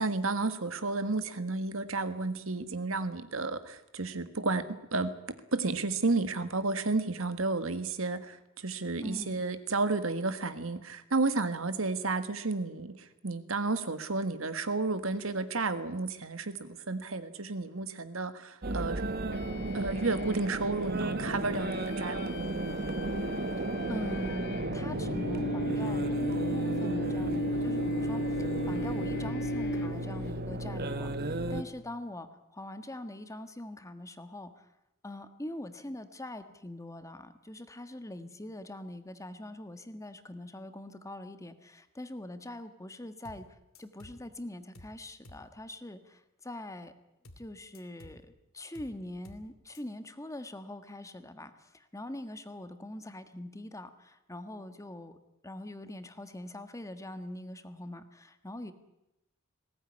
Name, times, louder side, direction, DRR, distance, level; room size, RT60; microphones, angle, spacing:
voice 1, 0.0-5.2 5.5-19.0 19.7-22.5, right 3 dB, 70° right, 11 dB, 1.7 m, -32 dB
voice 2, 9.0-9.4 23.6-34.7 35.0-46.9 47.4-48.2 48.5-55.2 55.4-58.7, left 1 dB, 15° left, 10 dB, 1.5 m, -43 dB
sound 1, 18.6-31.6, right 1 dB, 50° right, 1.4 m, -34 dB
sound 2, 19.3-30.4, left 1 dB, 55° left, 0.8 m, -36 dB
sound 3, 43.2-43.5 43.7-44.2 44.7-45.0 45.2-45.5 47.2-47.5 47.7-48.2 48.7-49.0 49.2-49.5 49.7-49.8, left 1 dB, 75° left, 2.8 m, -52 dB
20.0 x 17.5 x 9.9 m, 0.88 s
head